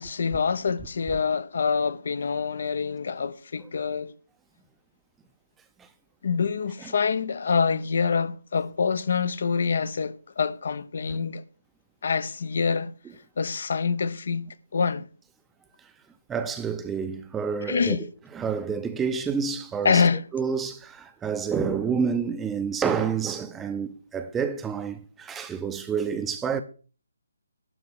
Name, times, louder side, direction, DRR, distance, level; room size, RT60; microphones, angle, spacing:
voice 1, 0.0-4.1 6.2-11.4 12.0-12.9 13.4-15.0 17.7-18.0 19.8-20.3, left 5 dB, 50° left, 0.7 m, -26 dB
voice 2, 16.3-18.1 18.3-20.0 20.3-26.6, right 6 dB, 10° right, 0.7 m, -28 dB
12.0 x 4.7 x 8.1 m
figure-of-eight pair, 145°, 0 cm